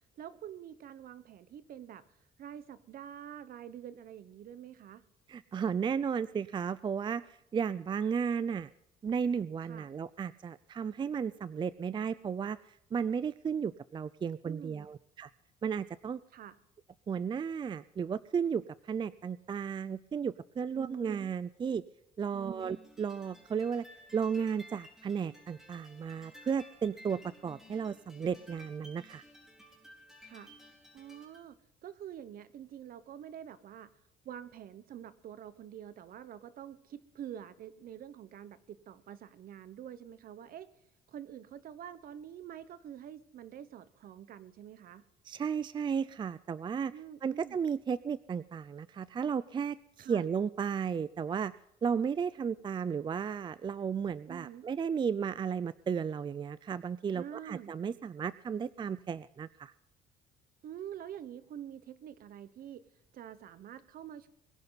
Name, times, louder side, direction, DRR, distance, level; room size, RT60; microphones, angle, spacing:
voice 1, 0.2-2.0 2.4-5.0 9.6-9.9 14.4-14.9 16.3-16.5 20.7-21.2 22.3-22.7 30.2-30.5 30.9-33.9 34.2-40.7 41.1-45.0 46.9-47.6 50.0-50.2 54.3-54.7 57.1-57.7 60.6-62.8 63.1-64.3, right 10 dB, 60° right, 15 dB, 1.2 m, -47 dB
voice 2, 5.3-7.2 7.5-8.7 9.0-12.6 12.9-15.3 15.6-16.2 17.1-21.8 22.2-23.8 24.1-29.2 45.2-46.9 47.2-51.5 51.8-59.7, right 6 dB, 30° right, 17 dB, 0.4 m, -34 dB
sound 1, 22.6-31.5, equal, 5° right, 4.3 m, -56 dB
22.0 x 11.0 x 4.1 m, 0.80 s
cardioid pair, 110°, 17 cm